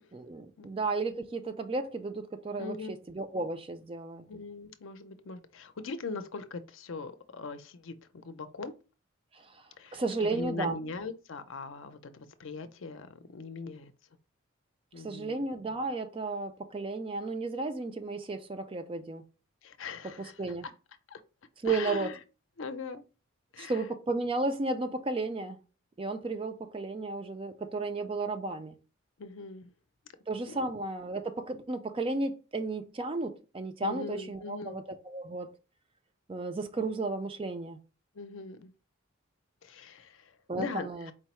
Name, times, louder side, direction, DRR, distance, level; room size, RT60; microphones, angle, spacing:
voice 1, 0.1-4.2 9.3-9.6 9.9-10.8 15.0-19.2 20.0-20.7 21.6-22.1 23.6-25.6 26.0-28.8 30.3-35.5 36.3-37.8 40.5-41.1, right 3 dB, 25° right, 0.3 m, -33 dB
voice 2, 2.6-2.9 4.3-7.9 8.2-8.7 9.8-10.0 10.3-13.9 14.9-15.4 19.6-20.3 21.1-21.2 21.6-22.2 22.6-23.0 23.5-23.8 29.2-29.7 30.5-30.6 33.8-34.8 38.1-38.7 39.6-41.1, left 4 dB, 65° left, 0.5 m, -40 dB
4.5 x 2.0 x 4.2 m
head